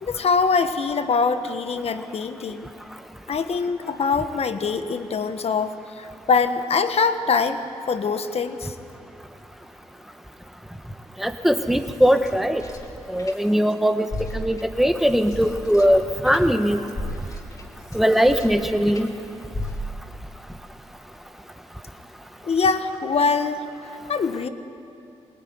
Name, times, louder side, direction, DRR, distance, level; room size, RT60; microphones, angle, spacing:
voice 1, 0.0-2.7 3.3-7.6 7.9-8.7 22.4-23.6 24.1-24.5, left 5 dB, 55° left, 9 dB, 1.5 m, -23 dB
voice 2, 11.2-12.6 13.1-16.8 17.9-19.1, equal, ahead, 7 dB, 1.4 m, -20 dB
sound 1, 11.4-13.7 14.0-19.1 19.5-20.2, left 1 dB, 30° left, 3.0 m, -36 dB
24.5 x 19.5 x 9.7 m, 2.7 s
cardioid pair, 90°, 12 cm